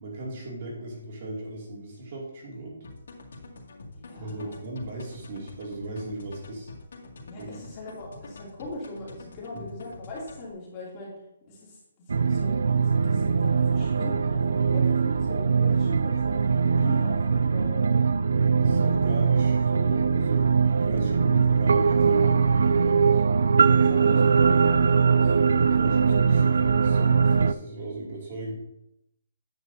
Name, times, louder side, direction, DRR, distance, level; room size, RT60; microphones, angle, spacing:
voice 1, 0.0-2.8 4.1-6.7 7.4-7.5 9.5-9.7 18.5-20.5 20.8-23.2 25.2-28.5, right 1 dB, 35° right, -3 dB, 2.5 m, -37 dB
sound 1, 2.8-10.5, left 2 dB, 70° left, 2.1 m, -46 dB
voice 2, 3.9-4.6 7.2-11.1 11.4-12.6 13.0-18.0 23.8-25.3, left 2 dB, 20° left, -5 dB, 2.8 m, -41 dB
sound 2, 12.1-27.5, right 5 dB, 75° right, 0.3 m, -21 dB
9.5 x 9.1 x 2.7 m, 0.83 s
hypercardioid pair, 170°, 0 cm